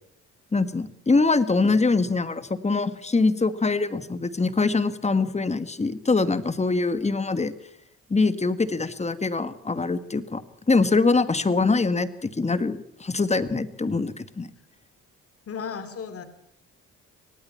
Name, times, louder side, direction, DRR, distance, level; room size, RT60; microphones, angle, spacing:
voice 1, 0.5-7.5 8.1-10.4 10.7-14.5, left 3 dB, 20° left, 13 dB, 1.7 m, -23 dB
voice 2, 15.5-16.3, left 6 dB, 50° left, 11 dB, 2.8 m, -34 dB
24.5 x 18.5 x 5.8 m, 0.70 s
cardioid pair, 90°, 30 cm